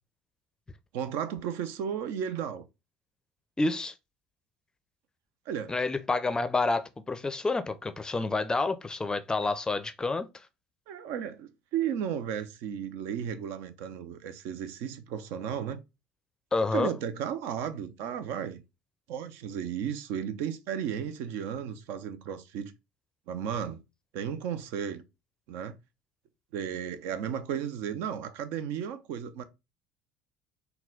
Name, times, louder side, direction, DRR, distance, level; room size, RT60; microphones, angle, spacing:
voice 1, 0.9-2.6 5.5-5.7 10.9-15.8 16.7-18.6 19.1-22.7 23.3-23.8 24.1-25.0 25.5-25.8 26.5-29.4, right 8 dB, 60° right, 0.5 m, -34 dB
voice 2, 3.6-3.9 5.7-10.3 16.5-16.9, left 3 dB, 15° left, 0.5 m, -29 dB
3.9 x 2.2 x 3.7 m
figure-of-eight pair, 60°, 4 cm